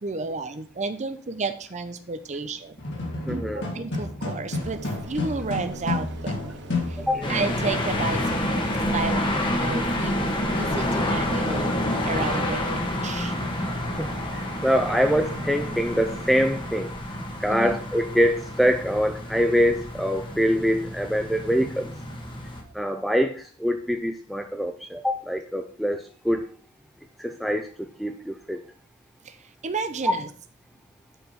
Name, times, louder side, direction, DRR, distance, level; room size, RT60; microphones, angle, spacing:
voice 1, 0.0-2.8 3.3-6.5 6.9-7.0 7.3-8.6 8.9-11.8 12.0-13.4 17.5-17.8 22.6-22.7 29.2-30.3, right 3 dB, 35° right, 9 dB, 0.7 m, -32 dB
sound 1, 2.8-7.4, left 2 dB, 55° left, 2.6 m, -31 dB
voice 2, 3.3-3.7 7.0-7.3 14.0-16.9 17.4-21.9 22.7-26.5 27.2-28.6 30.0-30.1, equal, ahead, 5 dB, 0.5 m, -24 dB
sound 2, 4.5-16.5, right 2 dB, 55° right, 1.1 m, -43 dB
sound 3, 7.2-22.6, left 1 dB, 25° left, 1.5 m, -28 dB
7.9 x 5.0 x 5.8 m, 0.42 s
head